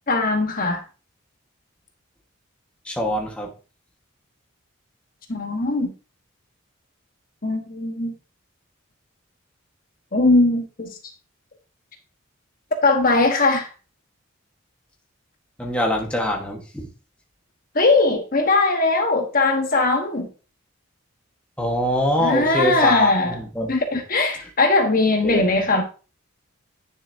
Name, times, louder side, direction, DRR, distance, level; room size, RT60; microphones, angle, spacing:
voice 1, 0.1-0.8 5.3-5.9 7.4-8.1 10.1-10.9 12.8-13.7 17.7-20.3 22.2-23.3 23.7-25.8, left 3 dB, 40° left, 1.2 m, -20 dB
voice 2, 2.8-3.5 15.6-16.9 21.6-23.7 25.2-25.5, equal, 5° left, 1.3 m, -24 dB
9.7 x 6.8 x 2.7 m
head